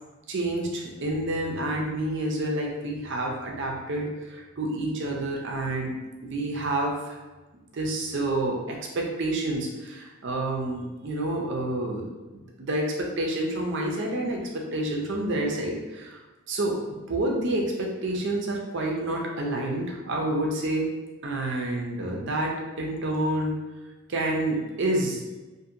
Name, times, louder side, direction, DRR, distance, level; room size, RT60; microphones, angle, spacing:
voice 1, 0.3-5.9 6.2-7.2 7.7-12.1 12.6-16.2 16.5-20.9 21.2-23.6 24.1-25.2, right 1 dB, 55° right, 0 dB, 0.5 m, -28 dB
2.7 x 2.5 x 2.5 m, 1.1 s
head